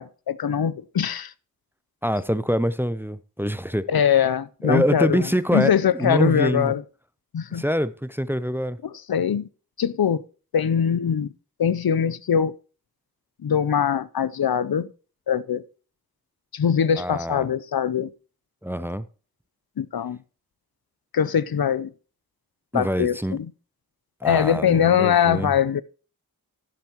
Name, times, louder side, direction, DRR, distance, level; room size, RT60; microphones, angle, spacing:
voice 1, 0.0-1.3 3.9-6.8 7.3-7.6 8.8-9.5 9.8-10.2 10.5-11.3 11.6-12.5 13.4-14.9 15.3-15.6 16.5-18.1 19.8-20.2 21.1-21.9 22.7-23.5 24.2-25.8, left 8 dB, 90° left, 0.5 m, -22 dB
voice 2, 2.0-3.9 4.6-6.7 7.5-8.8 17.0-17.5 18.6-19.0 22.7-23.4 24.2-25.5, equal, 5° right, 0.5 m, -25 dB
11.5 x 11.0 x 2.9 m
wide cardioid pair, 60°, 36 cm